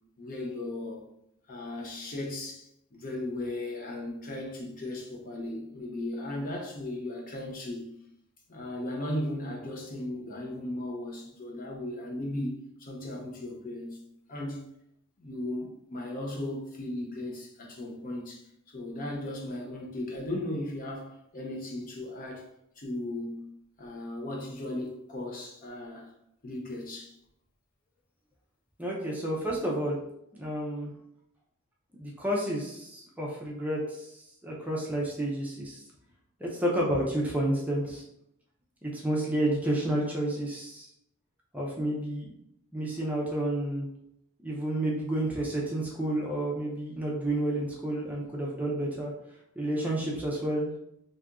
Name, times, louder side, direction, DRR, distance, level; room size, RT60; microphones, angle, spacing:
voice 1, 0.2-1.0 1.5-7.9 8.5-14.0 14.3-14.6 15.2-22.4 22.8-23.5 23.8-26.1 26.4-27.2, left 1 dB, 40° left, 0.6 m, -36 dB
voice 2, 28.8-30.0 30.3-30.9 32.0-35.8 36.4-38.0 38.8-40.9 41.5-42.3 42.7-43.9 44.4-49.1 49.6-50.7, right 1 dB, 5° right, 0.5 m, -30 dB
2.8 x 2.4 x 3.5 m
head